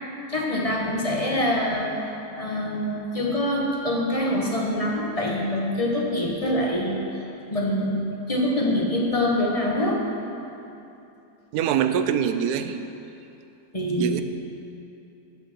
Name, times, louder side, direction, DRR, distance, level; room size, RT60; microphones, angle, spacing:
voice 1, 0.3-2.1 2.4-7.0 7.5-10.0 13.7-14.2, left 1 dB, 25° left, -3 dB, 1.2 m, -25 dB
voice 2, 11.5-12.9 14.0-14.2, right 8 dB, 75° right, 9 dB, 1.1 m, -24 dB
11.0 x 7.2 x 6.0 m, 2.8 s
omnidirectional pair, 1.8 m